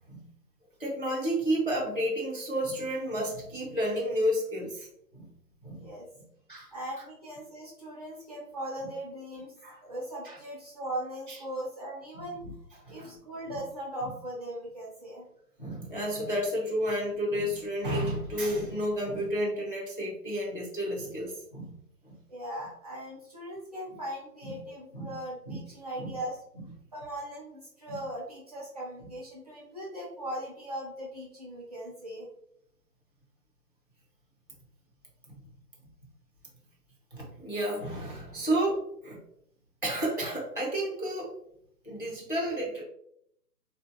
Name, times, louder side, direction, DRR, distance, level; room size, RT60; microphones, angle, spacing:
voice 1, 0.8-4.9 5.1-5.3 5.6-5.9 6.5-6.7 9.6-9.8 10.2-10.4 12.1-12.5 12.9-13.1 15.6-21.7 22.0-22.1 24.4-24.5 24.9-25.2 25.5-25.6 26.0-26.1 27.9-28.0 37.1-39.2 39.8-41.3 41.8-42.8, equal, 35° left, -3 dB, 0.4 m, -31 dB
voice 2, 5.7-6.1 6.7-9.5 9.8-12.4 12.9-15.3 22.3-26.4 26.9-32.3, right 1 dB, 25° right, -6 dB, 0.6 m, -39 dB
3.4 x 2.5 x 2.4 m, 0.73 s
figure-of-eight pair, 140°, 49 cm